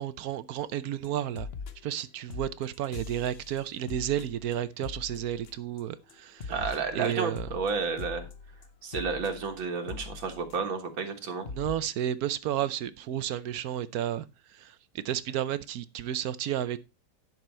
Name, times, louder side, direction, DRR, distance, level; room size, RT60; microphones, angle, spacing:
voice 1, 0.0-1.5 1.8-6.5 6.9-7.5 11.5-14.2 14.5-16.8, right 11 dB, 65° right, 1.0 m, -32 dB
sound 1, 1.0-1.1 1.3-2.0 2.3-5.8 6.1-10.9 11.2-11.3 11.4-11.7, left 5 dB, 45° left, 0.9 m, -42 dB
voice 2, 6.5-8.3 8.8-11.5, right 5 dB, 85° right, 2.3 m, -31 dB
11.0 x 6.2 x 4.4 m
omnidirectional pair, 2.1 m